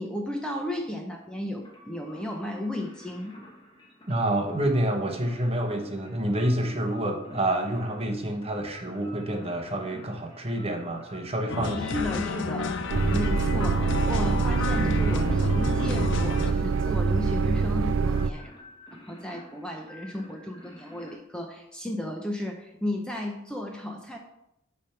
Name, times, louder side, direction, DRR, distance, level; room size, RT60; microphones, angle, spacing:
voice 1, 0.0-3.4 11.6-12.7 13.1-18.5 19.0-24.2, left 1 dB, 5° left, 2 dB, 0.6 m, -34 dB
sound 1, 1.6-21.1, left 1 dB, 25° left, 1.2 m, -49 dB
voice 2, 4.1-11.8, right 1 dB, 30° right, 4 dB, 1.0 m, -28 dB
sound 2, 11.5-16.5, left 4 dB, 65° left, 0.5 m, -31 dB
sound 3, 12.9-18.3, right 4 dB, 70° right, 0.4 m, -25 dB
8.7 x 3.4 x 5.7 m, 0.84 s
head